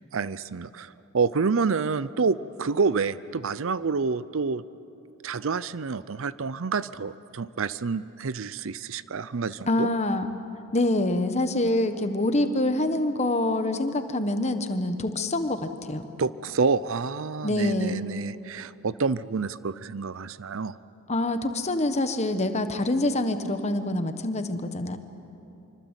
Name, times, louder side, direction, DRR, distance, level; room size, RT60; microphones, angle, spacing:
voice 1, 0.1-4.6 5.2-9.9 16.2-20.8, right 4 dB, 60° right, 17 dB, 0.5 m, -28 dB
voice 2, 9.7-10.3 10.7-16.0 17.4-18.0 21.1-25.0, left 1 dB, 30° left, 9 dB, 1.2 m, -26 dB
25.5 x 25.0 x 8.2 m, 2.9 s
head